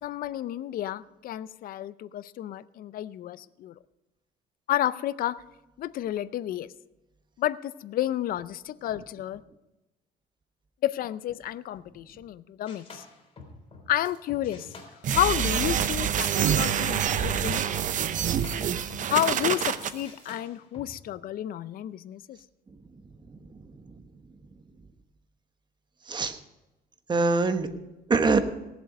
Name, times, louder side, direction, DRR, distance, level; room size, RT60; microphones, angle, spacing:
voice 1, 0.0-3.7 4.7-5.4 5.8-6.7 7.4-9.4 10.8-13.0 13.9-14.7 15.1-17.6 19.1-22.4, left 12 dB, 60° left, 16 dB, 0.5 m, -30 dB
sound 1, 12.7-16.0 16.3-19.7 20.0-21.0, left 3 dB, 35° left, 3.7 m, -48 dB
sound 2, 15.0-19.9, right 8 dB, 50° right, 0.8 m, -26 dB
voice 2, 23.3-24.0 26.1-26.4 27.1-27.7 28.1-28.4, right 3 dB, 25° right, 8 dB, 1.2 m, -25 dB
17.5 x 7.7 x 5.3 m, 1.0 s
cardioid pair, 110°, 17 cm